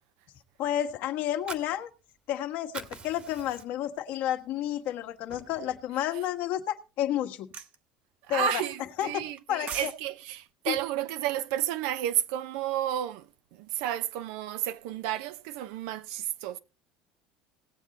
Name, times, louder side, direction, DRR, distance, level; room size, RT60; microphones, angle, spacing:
voice 1, 0.6-1.9 2.3-7.5 8.3-8.6 9.0-9.9 10.7-10.8, left 11 dB, 65° left, 1.5 m, -31 dB
Fire, 1.2-2.4 2.6-4.0 4.4-4.5 4.9-5.9, right 5 dB, 35° right, 1.6 m, -44 dB
sound 1, 7.5-7.8 9.4-10.0 10.3-10.5, right 8 dB, 55° right, 1.3 m, -38 dB
voice 2, 8.3-16.6, right 11 dB, 75° right, 0.8 m, -32 dB
18.5 x 7.4 x 4.1 m
supercardioid pair, 90°, 3 cm